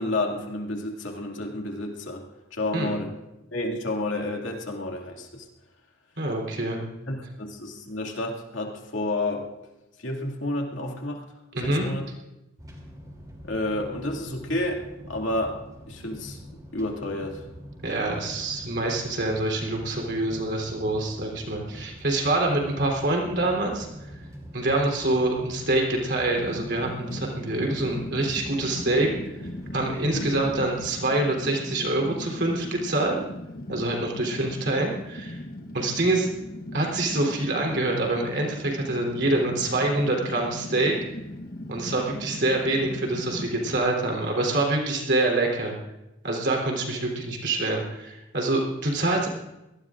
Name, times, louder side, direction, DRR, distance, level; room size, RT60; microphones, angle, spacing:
voice 1, 0.0-2.2 2.5-3.1 3.5-5.5 7.1-9.5 10.0-11.2 11.6-12.0 13.4-15.6 15.9-16.4 16.7-17.4 30.0-30.3, left 2 dB, 65° left, 0 dB, 2.4 m, -30 dB
voice 2, 6.2-6.8 11.5-11.9 17.8-23.9 24.5-29.1 29.7-33.2 33.7-35.4 35.7-36.3 36.7-40.9 41.7-45.7 46.2-49.3, right 2 dB, 55° right, 0 dB, 3.5 m, -26 dB
sound 1, 12.6-31.0, equal, 20° right, 3.0 m, -44 dB
Fire, 26.3-43.8, left 1 dB, 45° left, 1.1 m, -38 dB
24.5 x 18.5 x 2.5 m, 0.98 s
head